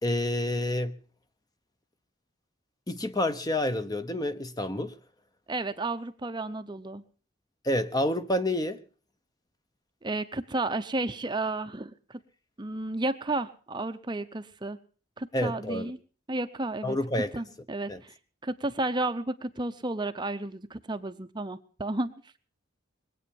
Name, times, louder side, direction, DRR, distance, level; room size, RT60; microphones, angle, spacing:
voice 1, 0.0-0.9 2.9-5.0 7.6-8.8 15.3-15.9 16.8-17.3 17.9-18.0, left 1 dB, 20° left, 0.9 m, -28 dB
voice 2, 5.5-7.0 10.0-12.2 12.6-14.8 15.2-16.0 16.3-18.2 18.4-22.2, right 2 dB, 20° right, 0.7 m, -32 dB
21.5 x 8.6 x 7.0 m
head